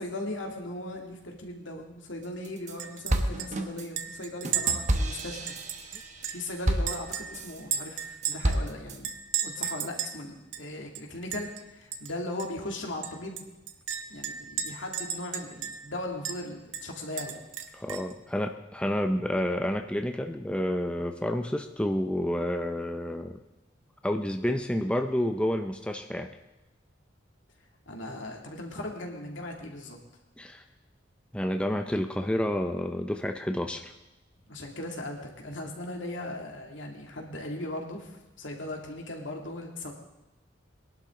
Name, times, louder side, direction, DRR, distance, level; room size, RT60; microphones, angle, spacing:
voice 1, 0.0-5.5 6.3-9.2 9.4-13.4 14.1-17.4 17.7-17.8 27.9-30.0 34.5-39.9, left 1 dB, 75° left, 1 dB, 2.4 m, -38 dB
sound 1, 2.2-2.8 3.1-7.6 8.0-9.0, right 1 dB, 40° right, 1.2 m, -30 dB
Chink clink, 2.8-3.1 3.4-3.5 4.0-6.5 6.9-8.6 9.0-10.2 10.5-10.6 11.0-11.6 11.9-12.1 12.4-12.5 13.0-15.9 16.3-16.4 16.7-18.1, right 8 dB, 80° right, 1.0 m, -34 dB
voice 2, 17.7-23.4 24.0-26.3 30.4-30.6 31.3-33.9, left 1 dB, 5° left, 5 dB, 0.6 m, -29 dB
21.5 x 11.5 x 3.8 m, 0.99 s
head